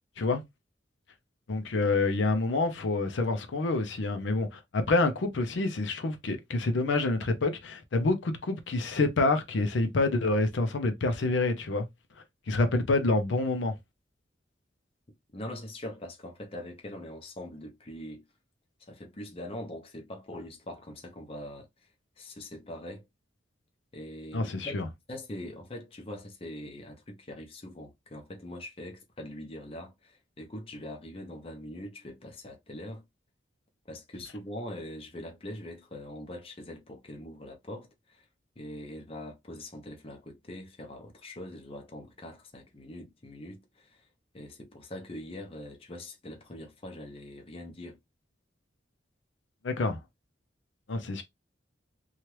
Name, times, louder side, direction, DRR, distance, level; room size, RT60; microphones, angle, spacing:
voice 1, 1.5-11.9 12.5-13.7 24.3-24.9 49.6-50.0 50.9-51.2, left 2 dB, 80° left, 0.5 m, -27 dB
voice 2, 15.3-18.2 18.8-21.7 22.2-23.1 23.9-33.0 33.9-38.2 38.6-44.0 44.3-48.0, left 1 dB, 30° left, 0.7 m, -42 dB
2.9 x 2.3 x 3.1 m
head